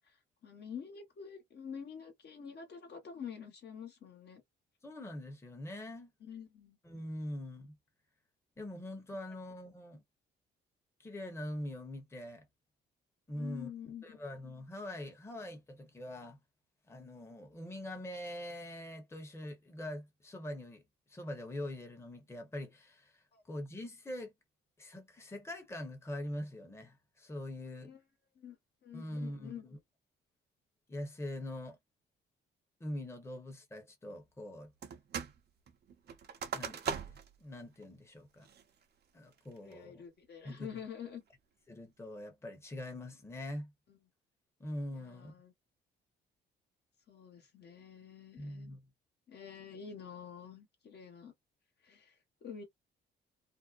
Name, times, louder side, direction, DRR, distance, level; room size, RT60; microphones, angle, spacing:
voice 1, 0.4-4.4 6.2-6.8 13.3-14.0 23.3-23.4 27.8-28.0 28.4-28.6 28.8-29.7 39.6-41.2 45.0-45.5 47.1-48.7 49.3-51.3 51.8-52.1 52.4-52.6, left 7 dB, 55° left, 1.1 m, -47 dB
voice 2, 4.8-6.1 6.8-7.8 8.6-10.0 11.0-12.5 13.3-13.7 14.0-16.4 16.9-20.8 21.1-24.3 24.8-27.9 28.9-29.8 30.9-31.8 32.8-34.7 36.5-38.5 39.1-40.0 40.4-40.7 41.7-43.7 44.6-45.3 48.4-48.8, left 1 dB, 15° left, 0.9 m, -43 dB
sound 1, 34.8-35.4 35.7-37.4 37.8-37.9 38.4-38.8 39.3-39.7, right 7 dB, 55° right, 0.7 m, -40 dB
2.6 x 2.1 x 2.4 m
cardioid pair, 90°, 20 cm